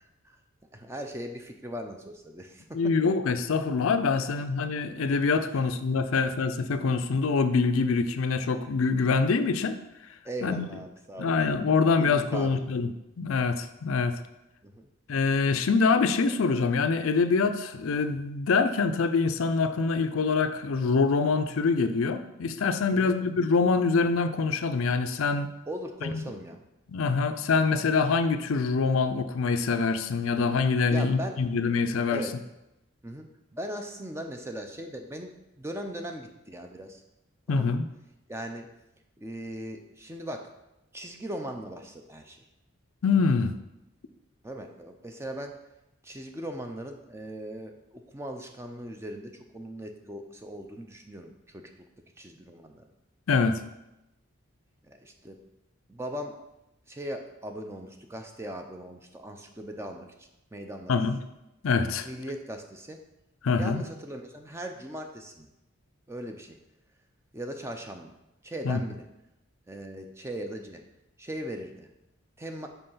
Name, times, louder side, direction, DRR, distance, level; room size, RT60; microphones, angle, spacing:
voice 1, 0.7-2.8 4.3-4.4 10.2-11.4 12.0-12.6 14.6-14.9 22.9-23.2 25.7-26.6 30.8-31.4 32.1-32.3 33.0-37.0 37.5-37.8 38.3-38.7 39.2-40.5 40.9-42.4 44.4-45.5 46.0-51.7 52.2-52.8 54.8-55.4 55.9-56.4 56.9-60.9 62.0-63.0 63.6-65.5 66.1-66.6 67.3-68.1 68.4-69.0 69.7-70.8 71.2-71.9 72.4-72.7, right 1 dB, 10° right, 4 dB, 0.5 m, -39 dB
voice 2, 2.7-9.8 10.4-10.7 11.2-14.2 15.1-25.5 26.0-26.1 26.9-32.2 37.5-37.8 43.0-43.5 53.3-53.6 60.9-61.2 61.6-62.1 63.4-63.8 68.6-68.8, left 4 dB, 75° left, 10 dB, 0.4 m, -25 dB
5.5 x 4.6 x 5.6 m, 0.92 s
head